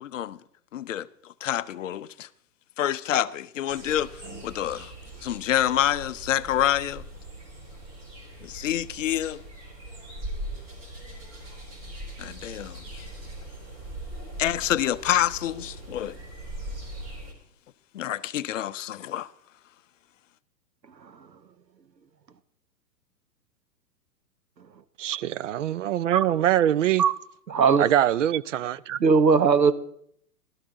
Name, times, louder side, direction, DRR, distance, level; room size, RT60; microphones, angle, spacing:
voice 1, 0.0-0.4 0.7-1.1 1.4-2.3 2.8-4.1 4.4-4.9 5.2-7.0 8.4-9.4 12.2-13.0 14.4-16.2 17.9-19.3, left 11 dB, 50° left, 0.6 m, -27 dB
sound 1, 3.7-17.3, right 1 dB, 35° right, 3.9 m, -40 dB
voice 2, 25.0-27.0 27.8-29.0, right 11 dB, 50° right, 0.5 m, -24 dB
voice 3, 27.5-27.8 29.0-29.7, right 5 dB, 85° right, 1.0 m, -18 dB
16.5 x 12.5 x 3.9 m
figure-of-eight pair, 115°, 49 cm